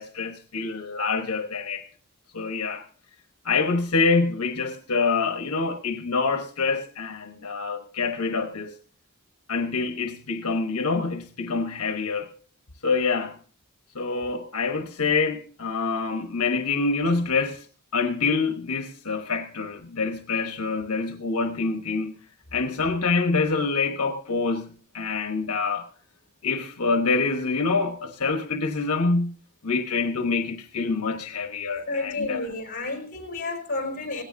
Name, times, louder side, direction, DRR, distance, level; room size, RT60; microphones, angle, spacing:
voice 1, 0.0-1.9 2.3-2.8 3.4-8.7 9.5-12.3 12.8-13.4 13.9-17.7 17.9-22.2 22.5-25.9 26.4-29.4 29.6-32.4, left 4 dB, 80° left, 1.2 m, -26 dB
voice 2, 31.9-34.2, left 2 dB, 40° left, 4.7 m, -31 dB
18.0 x 17.0 x 2.7 m
head